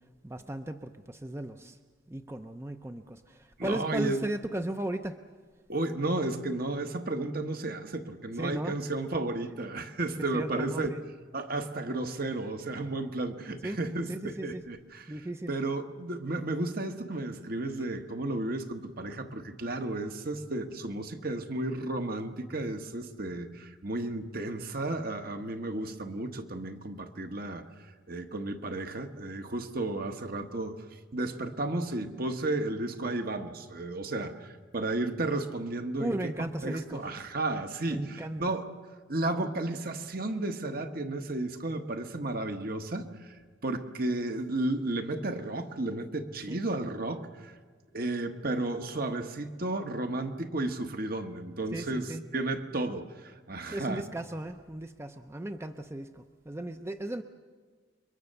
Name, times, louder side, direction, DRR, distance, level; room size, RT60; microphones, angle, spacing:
voice 1, 0.2-1.8 2.1-5.2 8.4-8.7 10.3-11.0 13.6-13.8 14.1-14.6 15.1-15.5 36.0-37.0 37.9-38.4 46.5-46.6 51.7-52.2 53.7-57.2, right 1 dB, 15° right, 7 dB, 0.6 m, -36 dB
voice 2, 3.6-4.2 5.7-10.9 11.3-15.1 15.5-27.6 28.1-38.7 39.1-43.3 43.6-47.6 47.9-54.0, right 2 dB, 50° right, 6 dB, 1.4 m, -33 dB
29.5 x 22.5 x 6.8 m, 1.5 s
head